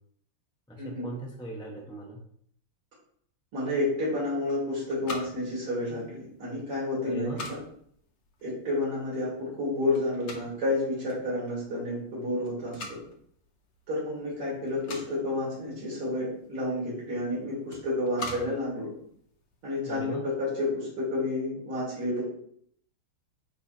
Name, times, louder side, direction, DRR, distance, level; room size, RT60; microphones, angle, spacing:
voice 1, 0.7-2.2 7.0-7.5 19.8-20.2, right 1 dB, 5° left, -2 dB, 0.6 m, -38 dB
voice 2, 3.5-7.6 8.4-13.0 13.9-18.9 19.6-22.2, left 1 dB, 80° right, -7 dB, 3.9 m, -30 dB
sound 1, 4.5-19.7, left 3 dB, 50° left, 0.8 m, -46 dB
9.1 x 3.2 x 4.4 m, 0.66 s
omnidirectional pair, 2.4 m